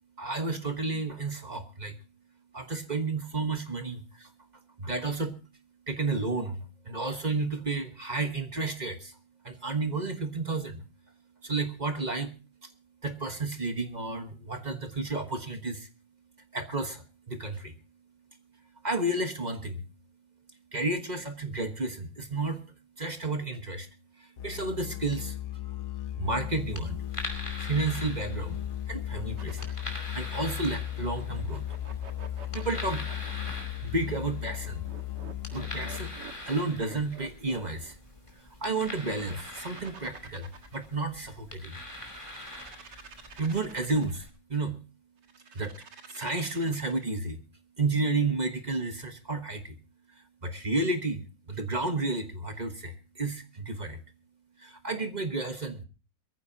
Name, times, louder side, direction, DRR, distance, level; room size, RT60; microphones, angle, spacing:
voice 1, 0.2-2.0 2.5-4.3 4.8-5.4 5.9-9.2 9.4-10.8 11.4-12.3 12.6-12.7 13.0-15.9 16.5-17.8 18.8-19.8 20.7-22.6 23.0-23.9 24.2-25.4 26.2-27.0 27.5-29.7 30.0-31.6 32.5-33.1 33.8-34.9 35.5-36.1 36.4-38.0 38.4-41.8 43.4-44.8 45.5-47.4 47.8-49.8 50.4-54.0 54.6-55.8, right 3 dB, 25° right, 7 dB, 1.2 m, -32 dB
Musical instrument, 24.4-36.4, left 13 dB, 55° left, 1.1 m, -36 dB
sound 1, 26.5-44.3, left 1 dB, 15° left, 2.7 m, -44 dB
sound 2, 29.3-30.2 31.2-33.6 34.5-37.9 38.7-41.0 41.8-44.3 45.2-47.1, right 5 dB, 70° right, 2.3 m, -49 dB
22.5 x 14.5 x 2.8 m, 0.33 s
omnidirectional pair, 2.0 m